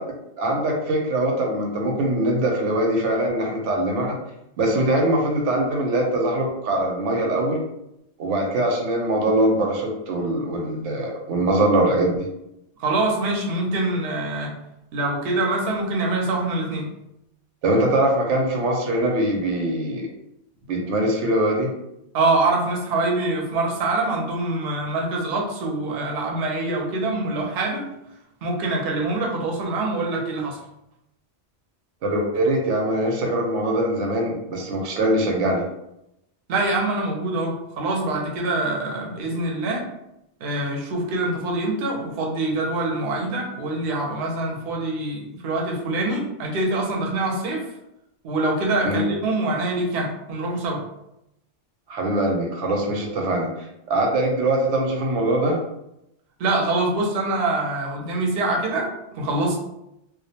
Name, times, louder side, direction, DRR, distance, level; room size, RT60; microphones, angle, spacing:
voice 1, 0.4-4.2 4.6-7.6 8.2-12.2 17.6-20.1 20.7-21.7 32.0-35.6 48.8-49.0 51.9-55.6, right 1 dB, 90° right, 0 dB, 0.9 m, -22 dB
voice 2, 12.8-14.5 14.9-16.9 22.1-27.9 28.4-30.6 36.5-39.8 40.4-47.6 48.2-50.8 56.4-58.9 59.1-59.6, right 2 dB, 60° right, -1 dB, 0.7 m, -24 dB
2.4 x 2.0 x 2.7 m, 0.85 s
omnidirectional pair, 1.2 m